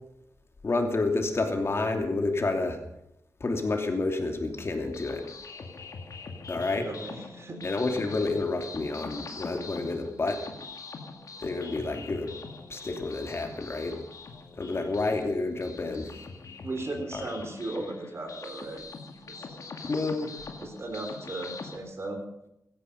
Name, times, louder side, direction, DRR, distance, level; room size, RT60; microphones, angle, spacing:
voice 1, 0.6-2.8 3.4-5.3 6.5-6.9 7.6-10.4 11.4-12.3 12.7-14.0 14.6-16.1 17.1-17.2 19.8-20.3, left 3 dB, 45° left, 4 dB, 2.9 m, -29 dB
sound 1, 4.6-21.8, left 4 dB, 65° left, 2.2 m, -43 dB
voice 2, 6.9-7.7 16.6-18.8 19.2-19.5 20.6-22.2, right 2 dB, 45° right, 4 dB, 4.0 m, -36 dB
16.5 x 14.5 x 5.4 m, 0.82 s
cardioid pair, 80°, 6 cm